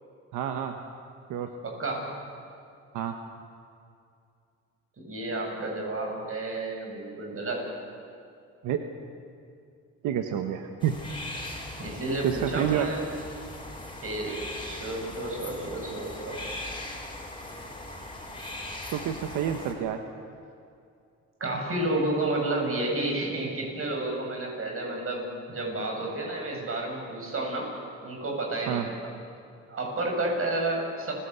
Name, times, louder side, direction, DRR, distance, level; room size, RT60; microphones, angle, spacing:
voice 1, 0.3-0.7 1.3-1.5 2.9-3.1 8.6-8.8 10.0-10.9 12.2-12.9 18.9-20.0 28.7-28.9, right 10 dB, 90° right, 6 dB, 1.4 m, -28 dB
voice 2, 1.6-2.1 5.0-7.6 11.8-13.0 14.0-16.4 21.4-27.7 28.0-29.1 29.7-31.1, right 2 dB, 45° right, 1 dB, 7.7 m, -31 dB
sound 1, 10.8-19.7, left 1 dB, 15° left, 5.6 m, -39 dB
29.5 x 17.5 x 8.2 m, 2.4 s
cardioid pair, 90°, 30 cm